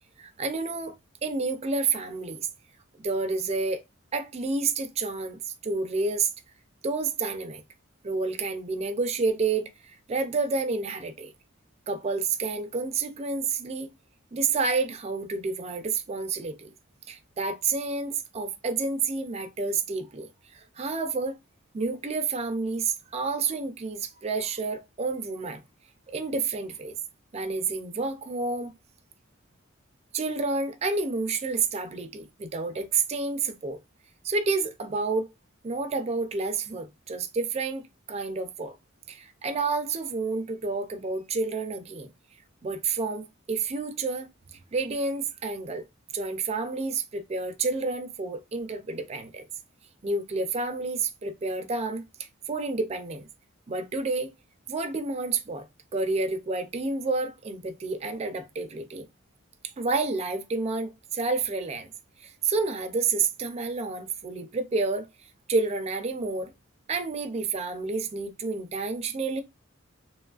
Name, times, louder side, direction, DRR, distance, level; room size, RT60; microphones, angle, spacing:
voice 1, 0.2-2.5 3.0-3.8 4.1-6.3 6.8-7.6 8.0-11.3 11.9-13.9 14.3-16.7 17.1-21.4 21.7-25.6 26.1-26.9 27.3-28.7 30.1-33.8 34.2-35.3 35.6-38.8 39.1-42.1 42.6-45.8 46.1-49.5 50.0-52.0 52.5-53.3 53.7-54.3 54.7-55.7 55.9-59.1 59.8-61.9 62.2-65.1 65.5-66.5 66.9-69.4, right 4 dB, 30° right, 0.4 m, -29 dB
3.0 x 2.3 x 2.3 m
head